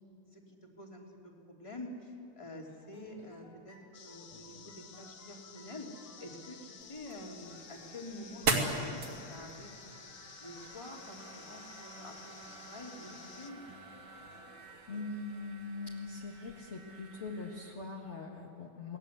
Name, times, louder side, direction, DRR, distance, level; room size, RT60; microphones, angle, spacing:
voice 1, 0.3-9.7 10.0-10.1 10.4-13.7, left 1 dB, 10° left, 0 dB, 2.6 m, -48 dB
sound 1, 2.5-15.0, left 1 dB, 80° left, 6.9 m, -60 dB
sound 2, 3.9-13.5, left 7 dB, 55° left, 1.8 m, -53 dB
sound 3, 6.8-17.7, right 3 dB, 40° right, 3.3 m, -41 dB
voice 2, 14.9-19.0, left 3 dB, 30° left, -2 dB, 1.6 m, -42 dB
29.0 x 20.0 x 8.1 m, 2.7 s
omnidirectional pair, 3.5 m